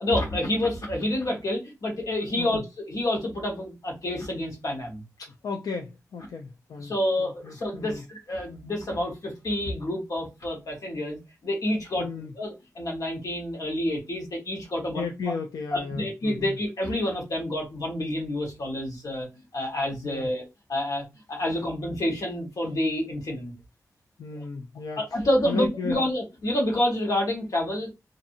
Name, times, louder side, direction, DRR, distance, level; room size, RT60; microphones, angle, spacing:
voice 1, 0.0-5.0 6.8-15.3 15.7-19.3 19.5-20.4 20.7-23.5 24.3-24.4 25.0-27.9, left 1 dB, 65° left, 1.1 m, -28 dB
voice 2, 5.2-6.9 7.2-8.0 12.0-12.3 14.9-16.5 20.0-20.3 24.2-25.0 25.4-26.1, left 5 dB, 90° left, 0.4 m, -35 dB
2.7 x 2.5 x 2.5 m
wide cardioid pair, 110°, 6 cm